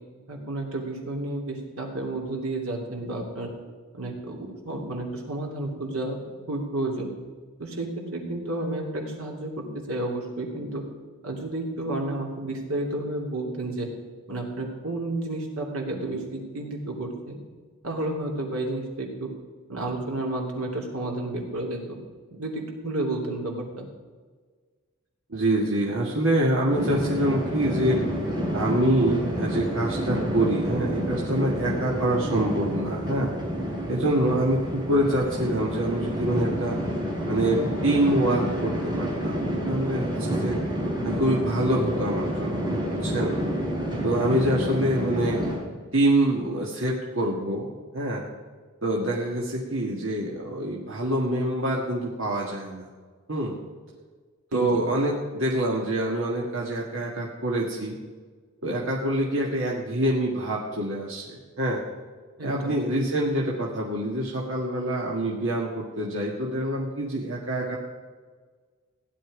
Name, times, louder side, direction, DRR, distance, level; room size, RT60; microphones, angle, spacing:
voice 1, 0.3-3.5 3.9-6.2 6.5-7.1 7.6-10.8 11.2-13.9 14.3-17.4 17.8-19.3 19.7-22.0 22.3-23.9 43.7-43.9 54.5-54.7 62.4-62.9, right 2 dB, 85° right, 1 dB, 3.0 m, -31 dB
voice 2, 25.3-28.0 28.5-33.3 33.9-36.8 37.3-40.6 41.0-42.7 43.0-43.4 44.0-45.4 45.9-48.2 48.8-52.9 53.3-53.5 54.5-58.0 58.6-61.8 62.4-67.8, right 1 dB, 60° right, -3 dB, 1.8 m, -25 dB
sound 1, 26.7-45.6, equal, 20° right, 4.2 m, -29 dB
16.0 x 10.5 x 5.0 m, 1.5 s
head